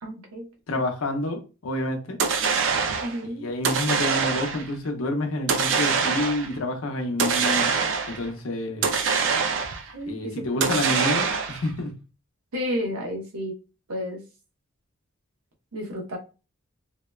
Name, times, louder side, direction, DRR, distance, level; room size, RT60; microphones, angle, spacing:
voice 1, 0.0-0.5 3.0-3.5 9.9-10.8 12.5-13.5 13.9-14.2 15.7-16.2, equal, 90° right, 0.8 m, -32 dB
voice 2, 0.7-2.2 3.2-7.7 8.1-8.9 10.1-12.0, left 1 dB, 75° left, 0.6 m, -28 dB
sound 1, 2.2-3.2 3.6-4.7 5.5-6.5 7.2-8.3 8.8-9.9 10.6-11.7, right 5 dB, 60° right, 0.4 m, -24 dB
2.7 x 2.1 x 2.2 m
head